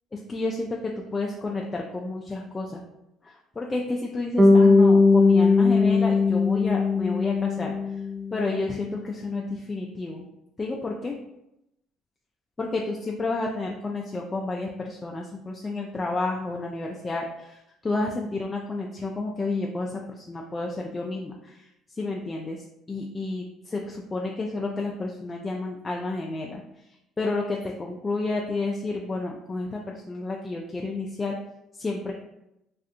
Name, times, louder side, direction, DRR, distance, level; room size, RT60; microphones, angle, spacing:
voice 1, 0.1-2.8 3.2-8.0 8.3-10.2 10.6-11.2 12.6-26.6 27.2-31.4 31.8-32.1, left 2 dB, 25° left, -1 dB, 0.3 m, -31 dB
Bass guitar, 4.4-8.5, left 3 dB, 35° right, 0.5 m, -19 dB
2.5 x 2.4 x 2.5 m, 0.85 s
hypercardioid pair, 65°, 0 cm